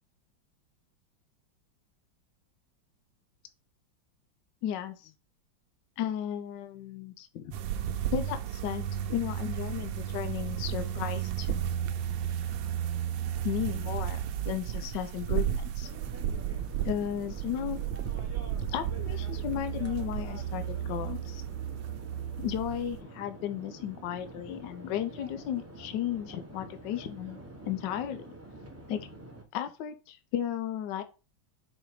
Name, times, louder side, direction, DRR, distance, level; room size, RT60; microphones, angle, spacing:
voice 1, 4.6-5.1 6.0-7.5 8.1-11.6 13.4-14.2 14.4-15.9 16.8-17.8 18.7-21.4 22.4-27.4 27.7-28.3 28.9-29.1 29.5-31.0, left 10 dB, 70° left, 9 dB, 1.2 m, -34 dB
sound 1, 7.5-23.0, right 10 dB, 80° right, 1.3 m, -33 dB
sound 2, 15.8-29.4, right 2 dB, 15° right, 0.5 m, -47 dB
5.0 x 4.1 x 4.7 m, 0.32 s
omnidirectional pair, 2.2 m